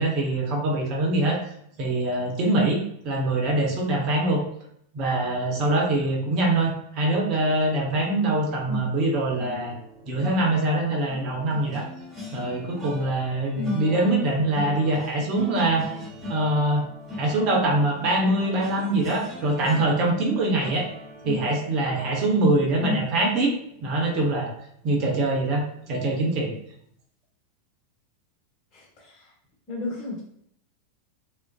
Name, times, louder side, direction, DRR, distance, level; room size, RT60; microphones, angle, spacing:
voice 1, 0.0-1.4 1.8-4.4 4.9-9.7 10.0-11.8 12.3-15.9 16.3-16.9 17.1-20.9 21.2-23.5 23.8-24.5 24.8-26.5, right 2 dB, 45° right, 0 dB, 0.8 m, -24 dB
sound 1, 9.3-24.5 24.9-25.1 25.4-25.6, left 2 dB, 15° right, 1.1 m, -41 dB
voice 2, 28.7-29.3 29.7-30.2, left 2 dB, 35° left, -3 dB, 1.1 m, -31 dB
2.5 x 2.1 x 2.3 m, 0.70 s
figure-of-eight pair, 85°, 0 cm